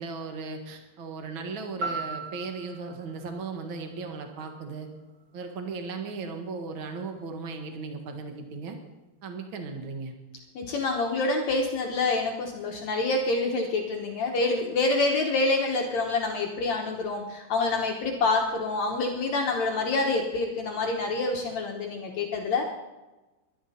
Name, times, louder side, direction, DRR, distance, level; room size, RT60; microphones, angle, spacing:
voice 1, 0.0-4.9 5.3-8.8 9.2-10.1, right 4 dB, 70° right, 4 dB, 1.1 m, -36 dB
sound 1, 1.8-5.9 6.3-6.4, right 3 dB, 50° right, 1.0 m, -39 dB
voice 2, 10.5-22.6, left 3 dB, 75° left, 1 dB, 1.6 m, -27 dB
22.5 x 11.0 x 4.2 m, 1.1 s
omnidirectional pair, 5.0 m